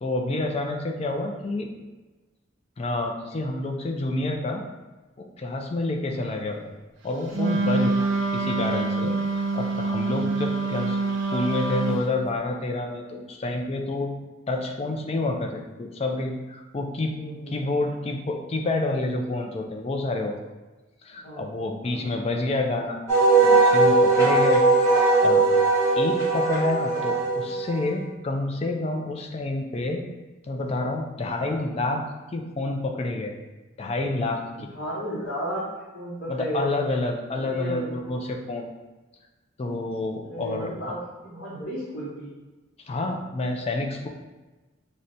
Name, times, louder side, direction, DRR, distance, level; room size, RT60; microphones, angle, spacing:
voice 1, 0.0-1.7 2.8-4.6 5.2-6.6 7.0-11.0 11.3-14.1 14.5-17.1 17.5-20.3 21.0-23.0 23.4-24.6 25.2-25.4 26.0-30.0 30.5-32.0 32.3-33.3 33.8-34.7 36.3-38.7 39.6-40.7 42.9-44.1, left 2 dB, 30° left, 3 dB, 0.3 m, -28 dB
voice 2, 6.3-6.6 10.6-10.7 17.2-17.6 21.2-21.5 21.9-22.3 27.4-27.5 31.4-31.7 34.5-35.7 35.9-36.9 37.4-37.9 40.3-42.3, equal, 65° left, -8 dB, 0.8 m, -34 dB
Wind instrument woodwind instrument, 7.3-12.1, right 3 dB, 65° right, 0.5 m, -26 dB
Wind instrument woodwind instrument 2, 23.1-27.9, right 3 dB, 15° left, 1.0 m, -19 dB
5.6 x 2.1 x 2.6 m, 1.2 s
head